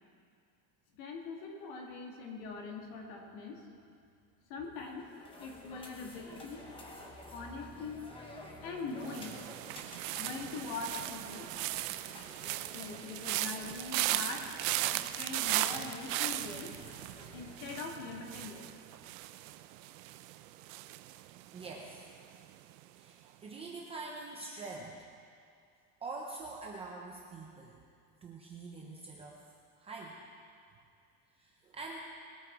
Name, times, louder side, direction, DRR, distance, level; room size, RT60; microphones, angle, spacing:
voice 1, 1.0-3.6 4.5-5.1 5.4-6.6 7.3-8.0 8.6-9.4 10.2-11.5 12.7-14.5 14.9-16.7 17.3-18.7, left 4 dB, 50° left, 1 dB, 2.3 m, -42 dB
sound 1, 4.8-17.7, left 1 dB, 10° left, 1.0 m, -52 dB
sound 2, 9.0-22.1 22.3-22.8, right 16 dB, 60° right, 0.6 m, -37 dB
voice 2, 21.5-22.5 22.9-25.1 26.0-27.8 28.2-29.4 29.8-30.2 31.4-32.1, right 3 dB, 15° right, -2 dB, 0.5 m, -45 dB
21.0 x 8.8 x 4.7 m, 2.3 s
cardioid pair, 180°, 45 cm